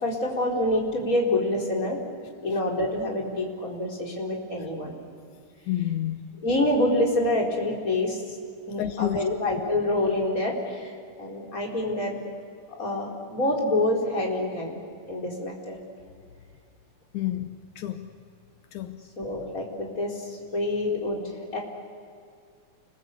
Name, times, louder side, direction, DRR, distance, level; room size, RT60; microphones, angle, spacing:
voice 1, 0.0-2.0 2.4-4.9 6.4-8.4 8.7-12.1 12.8-14.8 15.1-15.8 19.2-21.6, left 1 dB, 25° left, -1 dB, 4.7 m, -27 dB
voice 2, 5.7-6.4 8.8-9.2 17.1-18.1 18.7-19.0, left 13 dB, 80° left, 8 dB, 2.3 m, -30 dB
29.5 x 21.5 x 8.2 m, 2.4 s
omnidirectional pair, 3.4 m